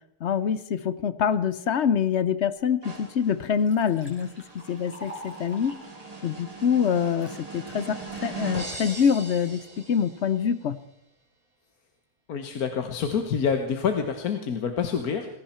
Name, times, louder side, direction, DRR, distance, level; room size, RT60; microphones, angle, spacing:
voice 1, 0.2-4.3 4.7-5.8 6.2-9.6 9.9-10.8, left 7 dB, 55° left, 14 dB, 0.9 m, -25 dB
sound 1, 2.8-10.4, right 3 dB, 25° right, 2.5 m, -40 dB
Liquid, 3.6-7.4 7.9-8.4, equal, 5° left, 4.7 m, -46 dB
voice 2, 12.3-15.3, left 6 dB, 70° left, 6 dB, 1.6 m, -27 dB
20.0 x 16.5 x 4.4 m, 0.81 s
omnidirectional pair, 1.6 m